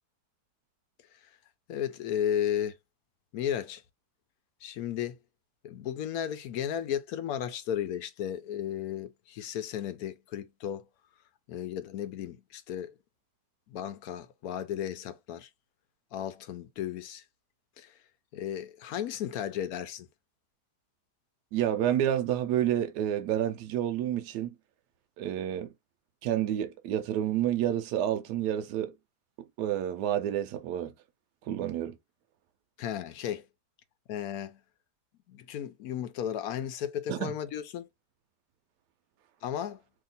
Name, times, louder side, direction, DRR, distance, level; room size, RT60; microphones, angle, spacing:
voice 1, 1.7-2.7 3.3-3.8 4.6-5.2 5.6-10.9 11.5-12.9 13.7-15.5 16.1-17.2 17.8-18.0 18.3-20.1 32.8-33.5 34.1-34.6 35.3-37.9 39.4-39.8, left 10 dB, 70° left, 1.0 m, -34 dB
voice 2, 21.5-24.5 25.2-25.7 26.2-28.9 29.6-30.9 31.4-32.0 37.1-37.3, right 11 dB, 80° right, 1.1 m, -29 dB
2.8 x 2.7 x 3.9 m
omnidirectional pair, 1.8 m